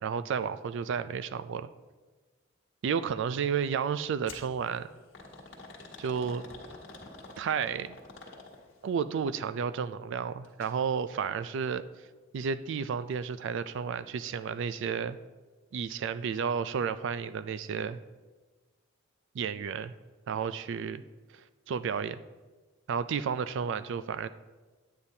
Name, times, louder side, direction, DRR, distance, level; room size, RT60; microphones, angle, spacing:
voice 1, 0.0-1.7 2.8-4.9 6.0-6.4 7.4-8.0 8.8-11.8 12.3-15.2 15.7-18.0 19.3-19.9 20.3-21.0 21.7-22.2 22.9-24.3, right 6 dB, 65° right, 14 dB, 0.3 m, -32 dB
sound 1, 4.3-4.5 5.1-8.8 10.4-10.8 11.1-11.2 12.1-12.2, left 3 dB, 65° left, 1.5 m, -47 dB
9.6 x 8.7 x 2.7 m, 1.3 s
head